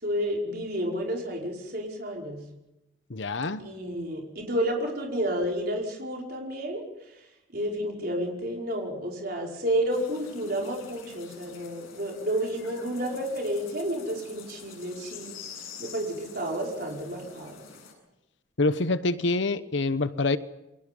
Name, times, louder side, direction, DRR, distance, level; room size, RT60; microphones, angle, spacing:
voice 1, 0.0-2.4 3.6-6.8 7.5-15.3 15.8-17.5, equal, 50° right, 5.3 m, -30 dB
voice 2, 3.1-3.7 18.6-20.4, left 2 dB, 65° left, 1.0 m, -26 dB
sound 1, 9.9-17.9, left 6 dB, 85° left, 7.8 m, -47 dB
28.5 x 23.5 x 5.5 m
head